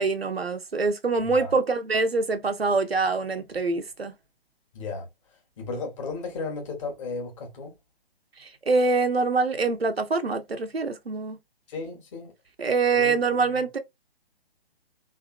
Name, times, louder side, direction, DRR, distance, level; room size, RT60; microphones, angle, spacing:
voice 1, 0.0-4.1 8.4-11.4 12.6-13.8, right 4 dB, 80° right, 0.8 m, -25 dB
voice 2, 1.2-1.5 4.7-5.1 5.6-7.7 11.7-12.3 12.9-13.6, left 3 dB, 30° left, 1.4 m, -35 dB
3.6 x 2.8 x 2.3 m
figure-of-eight pair, 130°, 30 cm